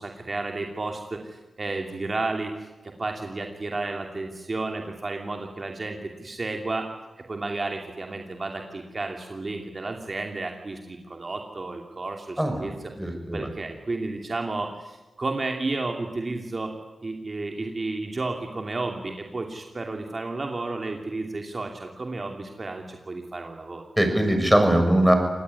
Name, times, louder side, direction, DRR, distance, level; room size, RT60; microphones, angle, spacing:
voice 1, 0.0-6.9 7.3-12.9 13.3-16.7 17.0-23.8, right 3 dB, 40° right, 3 dB, 2.9 m, -32 dB
voice 2, 12.4-13.5 24.0-25.1, right 1 dB, 5° right, 5 dB, 6.8 m, -21 dB
26.5 x 19.5 x 9.8 m, 1.1 s
cardioid pair, 70°, 0 cm